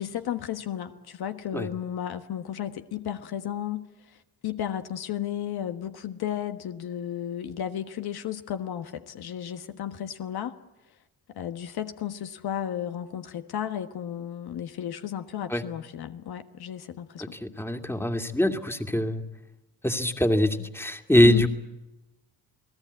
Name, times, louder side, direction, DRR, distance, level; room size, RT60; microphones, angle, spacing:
voice 1, 0.0-10.6 11.3-17.4 21.2-21.5, left 10 dB, 55° left, 1.5 m, -34 dB
voice 2, 17.2-19.2 19.8-21.5, left 1 dB, 5° left, 2.4 m, -23 dB
28.5 x 18.5 x 8.4 m
hypercardioid pair, 55°, 44 cm